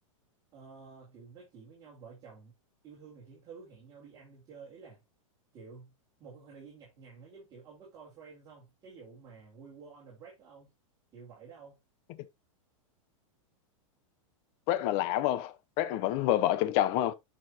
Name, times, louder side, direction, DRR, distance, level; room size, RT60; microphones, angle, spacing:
voice 1, 0.5-2.5 2.8-5.0 5.5-5.9 6.2-10.7 11.1-11.8, right 5 dB, 20° right, 3.6 m, -51 dB
voice 2, 14.7-17.1, left 13 dB, 30° left, 0.6 m, -28 dB
8.9 x 6.3 x 2.9 m
supercardioid pair, 165°, 18 cm